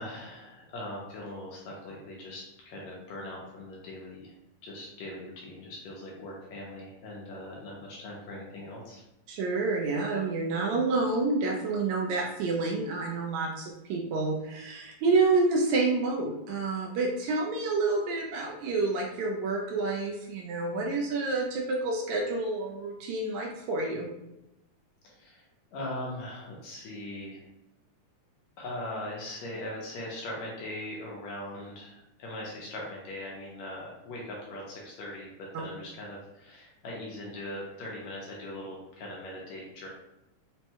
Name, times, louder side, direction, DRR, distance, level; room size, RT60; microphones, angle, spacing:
voice 1, 0.0-4.3 4.6-9.0 25.0-25.4 25.7-27.4 28.6-39.9, left 1 dB, 75° left, -3 dB, 1.8 m, -40 dB
voice 2, 9.3-24.1 35.5-35.6, right 3 dB, 80° right, -1 dB, 1.8 m, -28 dB
5.2 x 2.2 x 2.9 m, 0.89 s
omnidirectional pair, 3.6 m